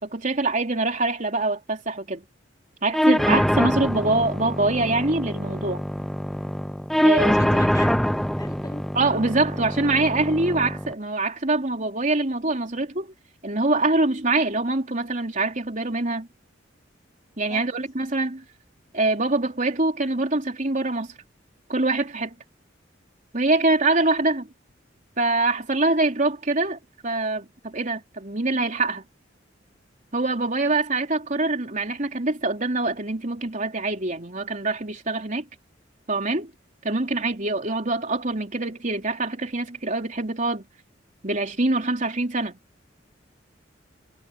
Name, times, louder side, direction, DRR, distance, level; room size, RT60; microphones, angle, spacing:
voice 1, 0.0-2.2 2.8-5.8 7.0-7.6 9.0-13.1 13.4-16.3 17.4-18.4 18.9-21.1 21.7-22.4 23.3-24.5 25.2-29.0 30.1-35.4 36.1-36.5 36.8-40.6 41.2-42.5, right 2 dB, 45° right, 3.4 m, -24 dB
sound 1, 2.9-10.9, equal, ahead, 0.3 m, -24 dB
voice 2, 6.8-8.0 8.4-8.8 17.5-17.6, left 1 dB, 20° left, 2.9 m, -37 dB
head